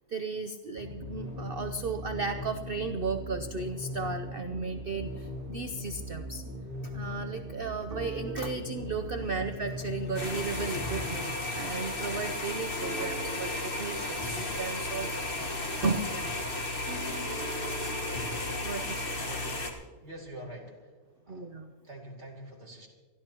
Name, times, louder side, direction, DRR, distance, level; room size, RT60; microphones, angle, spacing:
voice 1, 0.1-6.4 6.8-16.1 18.4-19.2 21.3-21.7, right 4 dB, 55° right, 7 dB, 0.7 m, -35 dB
sound 1, 0.8-11.5, left 1 dB, 10° right, 3.2 m, -39 dB
sound 2, 4.9-6.0 6.4-6.8 7.1-7.6 7.9-18.8, right 3 dB, 80° right, 1.5 m, -46 dB
sound 3, 10.2-19.7, left 2 dB, 35° left, 1.6 m, -34 dB
voice 2, 19.3-20.9 21.3-21.5 21.8-22.9, right 1 dB, 30° right, -2 dB, 2.6 m, -45 dB
28.0 x 12.5 x 2.9 m, 1.5 s
omnidirectional pair, 1.6 m